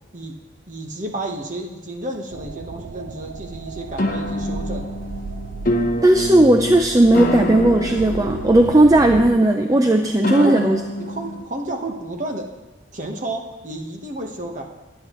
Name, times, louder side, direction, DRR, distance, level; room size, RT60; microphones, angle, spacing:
voice 1, 0.7-4.9 10.4-10.6 11.0-12.5 12.9-14.7, right 1 dB, 35° right, 3 dB, 1.2 m, -31 dB
sound 1, 2.3-9.3, right 3 dB, 75° right, 0.5 m, -34 dB
sound 2, 4.0-11.4, left 1 dB, 45° left, 0.9 m, -27 dB
voice 2, 6.0-10.8, right 1 dB, 15° right, 5 dB, 0.5 m, -15 dB
21.5 x 9.2 x 3.1 m, 1.2 s
head